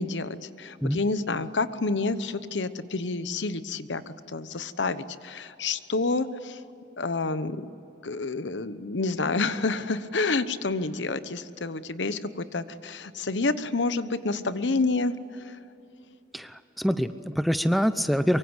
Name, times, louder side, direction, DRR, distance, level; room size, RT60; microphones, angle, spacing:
voice 1, 0.0-6.6 7.0-7.7 8.0-15.6, left 3 dB, 80° left, 13 dB, 1.1 m, -29 dB
voice 2, 16.3-18.4, equal, ahead, 11 dB, 0.7 m, -25 dB
24.0 x 24.0 x 8.1 m, 2.9 s
head